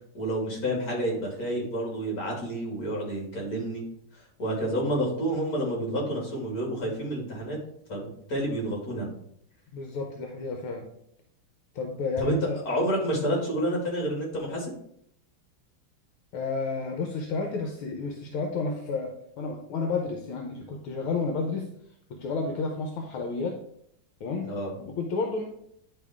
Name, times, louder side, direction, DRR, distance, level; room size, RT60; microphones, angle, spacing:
voice 1, 0.1-3.8 4.4-7.6 7.9-9.1 12.2-12.4 12.7-14.7 24.4-24.7, right 1 dB, 45° left, -2 dB, 2.6 m, -29 dB
voice 2, 9.7-10.9 11.8-12.6 16.3-21.7 22.1-23.6 24.2-24.5 24.8-25.4, left 4 dB, 75° left, 2 dB, 1.7 m, -31 dB
10.0 x 3.8 x 3.5 m, 0.70 s
omnidirectional pair, 2.4 m